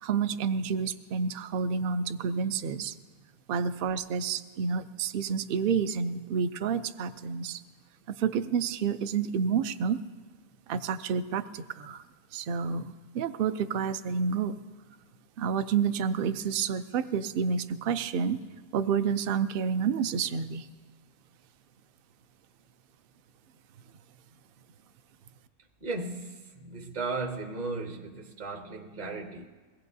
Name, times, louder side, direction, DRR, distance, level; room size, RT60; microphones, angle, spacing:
voice 1, 0.0-2.9 3.5-7.6 8.1-10.0 10.7-12.0 12.3-14.6 15.4-18.4 18.7-20.7, right 6 dB, 80° right, 0.5 m, -29 dB
voice 2, 25.8-29.5, right 3 dB, 40° right, 0.6 m, -36 dB
22.0 x 17.5 x 2.7 m
omnidirectional pair, 1.6 m